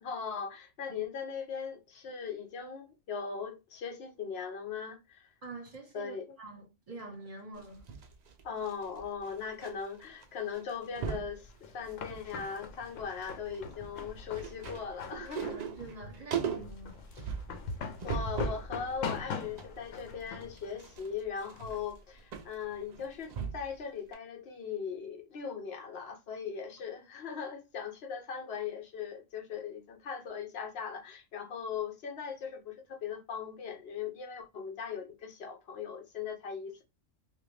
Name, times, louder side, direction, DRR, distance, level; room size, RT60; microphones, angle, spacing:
voice 1, 0.0-5.3 5.9-6.4 8.4-15.6 18.0-36.8, left 6 dB, 55° left, 1.0 m, -39 dB
voice 2, 5.4-7.9 15.4-17.0, right 3 dB, 30° right, 1.1 m, -46 dB
sound 1, 7.6-9.7 10.0-10.2 10.5-11.3 11.9-12.5 12.8-18.7 19.1-23.8 24.1-24.2, right 6 dB, 65° right, 0.4 m, -39 dB
sound 2, 11.4-21.8, left 5 dB, 85° left, 1.0 m, -43 dB
2.8 x 2.4 x 3.1 m
omnidirectional pair, 1.3 m